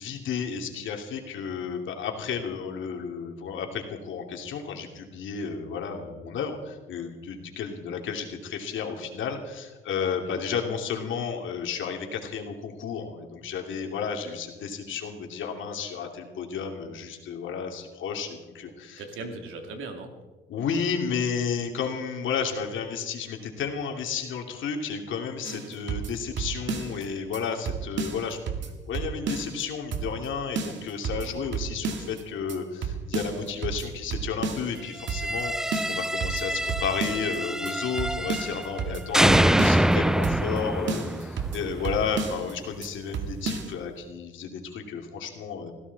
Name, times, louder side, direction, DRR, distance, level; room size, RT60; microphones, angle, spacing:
voice 1, 0.0-19.0 20.5-45.7, left 6 dB, 75° left, 3 dB, 2.8 m, -32 dB
voice 2, 10.0-10.4 19.0-20.1 31.0-31.3 41.8-41.9, right 3 dB, 85° right, 4 dB, 2.8 m, -40 dB
sound 1, 25.4-27.0 27.3-27.4 27.7-29.6 29.9-30.3 30.6-32.2 32.5-32.6 32.8-34.8 35.1-35.4 35.7-37.4 37.7-37.8 38.0-39.9 40.2-40.6 40.9-42.5 42.8-42.9 43.1-43.7, right 5 dB, 65° right, 2.1 m, -32 dB
sound 2, 35.0-38.8 39.1-42.2, right 1 dB, 5° right, 0.4 m, -25 dB
21.0 x 16.0 x 4.1 m, 1.2 s
cardioid pair, 90°, 20 cm